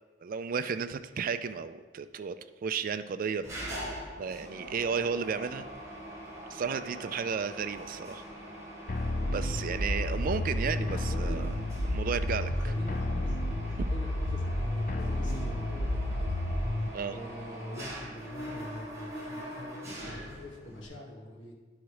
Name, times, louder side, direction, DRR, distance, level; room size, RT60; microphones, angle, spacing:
voice 1, 0.2-2.4 2.6-3.8 4.2-5.7 6.5-8.2 9.3-11.5 11.9-12.5 13.8-13.9 16.9-17.2, right 6 dB, 50° right, 11 dB, 0.4 m, -33 dB
Mechanisms, 3.4-20.9, right 1 dB, 15° right, 2.0 m, -43 dB
sound 1, 8.9-16.9, left 1 dB, 45° left, 0.6 m, -31 dB
voice 2, 10.1-11.4 12.5-13.4 13.6-16.4 17.1-21.5, left 1 dB, 75° left, -1 dB, 1.7 m, -45 dB
11.5 x 4.0 x 4.8 m, 1.4 s
head